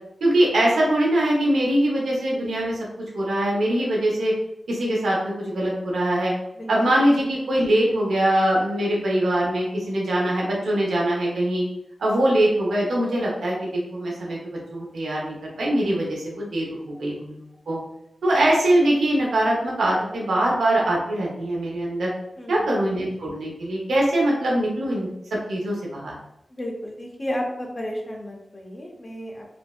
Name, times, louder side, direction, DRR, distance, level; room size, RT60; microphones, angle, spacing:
voice 1, 0.2-2.8 3.1-4.3 4.7-6.3 6.7-11.6 12.0-13.5 13.9-17.4 17.7-17.8 18.2-22.1 22.5-25.1 25.5-26.1, right 1 dB, 85° right, -3 dB, 0.7 m, -22 dB
voice 2, 22.4-22.7 26.5-29.5, equal, 35° left, 0 dB, 0.7 m, -32 dB
3.3 x 2.0 x 2.3 m, 0.83 s
cardioid pair, 40°, 0 cm